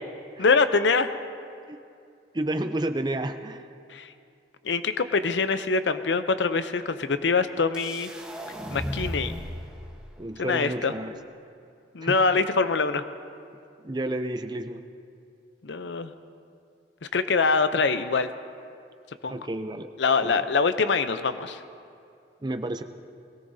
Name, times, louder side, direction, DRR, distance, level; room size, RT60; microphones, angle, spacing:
voice 1, 0.4-1.1 3.9-4.1 4.6-8.1 8.7-9.4 10.4-10.9 11.9-13.0 15.6-16.1 17.1-18.3 19.2-19.4 20.0-21.6, left 4 dB, 85° left, 11 dB, 0.6 m, -24 dB
voice 2, 2.3-3.7 10.2-11.1 12.0-12.2 13.8-14.8 19.3-19.9 20.2-20.5 22.4-22.8, right 1 dB, 25° right, 8 dB, 0.5 m, -31 dB
sound 1, 7.7-9.7, equal, 5° right, 1.1 m, -34 dB
21.5 x 17.0 x 2.7 m, 2.5 s
head